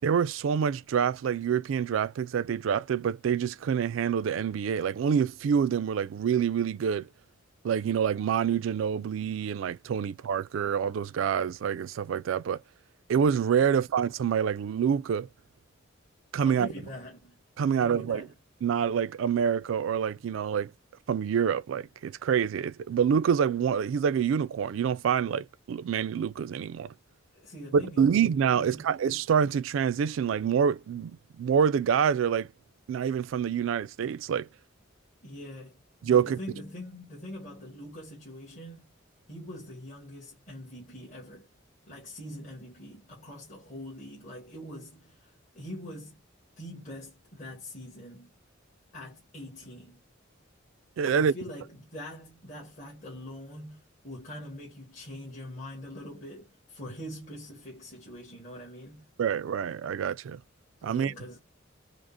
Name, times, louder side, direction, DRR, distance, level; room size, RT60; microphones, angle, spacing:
voice 1, 0.0-7.1 7.6-12.6 13.1-15.3 16.3-16.7 17.6-18.3 18.6-20.7 21.1-26.9 27.7-32.5 32.9-34.5 36.0-36.4 51.0-51.3 59.2-60.4 60.8-61.1, right 7 dB, 75° right, 0.3 m, -26 dB
voice 2, 16.4-17.4 17.6-18.3 27.3-28.1 28.5-28.9 35.2-38.9 39.3-41.5 41.9-46.2 46.6-48.3 48.9-50.0 51.0-59.1 60.8-61.4, left 1 dB, 40° left, 1.5 m, -43 dB
5.0 x 2.0 x 2.5 m
head